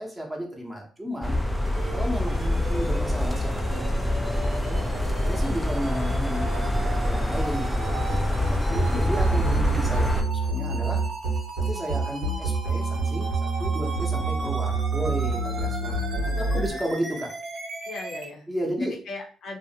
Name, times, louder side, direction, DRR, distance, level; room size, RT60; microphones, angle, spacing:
voice 1, 0.0-1.4 1.9-4.8 5.2-11.0 11.7-17.3 18.5-19.0, equal, 10° right, -1 dB, 0.7 m, -33 dB
sound 1, 1.2-10.2, left 1 dB, 5° left, 0.3 m, -26 dB
sound 2, 1.7-18.3, right 3 dB, 50° right, 0.7 m, -37 dB
sound 3, 7.8-16.7, right 3 dB, 85° right, 0.8 m, -27 dB
voice 2, 16.5-16.8 17.9-18.5 18.8-19.6, left 2 dB, 70° left, 0 dB, 0.6 m, -38 dB
2.5 x 2.0 x 2.7 m, 0.41 s
cardioid pair, 90°, 0 cm